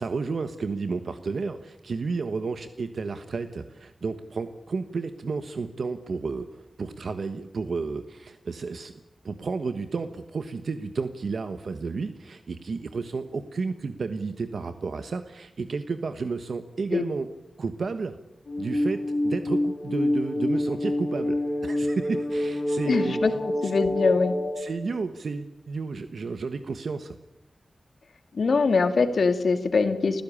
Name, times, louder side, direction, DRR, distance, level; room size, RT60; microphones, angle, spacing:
voice 1, 0.0-8.9 9.2-17.3 17.6-18.2 18.6-23.2 23.6-23.7 24.6-27.2, right 4 dB, 75° right, 9 dB, 1.2 m, -32 dB
sound 1, 18.5-24.6, left 1 dB, 60° left, 4.4 m, -27 dB
voice 2, 22.9-23.3 23.6-24.4 28.3-30.2, left 4 dB, 75° left, 8 dB, 2.2 m, -22 dB
29.5 x 16.0 x 8.8 m, 0.92 s
wide cardioid pair, 85°, 0 cm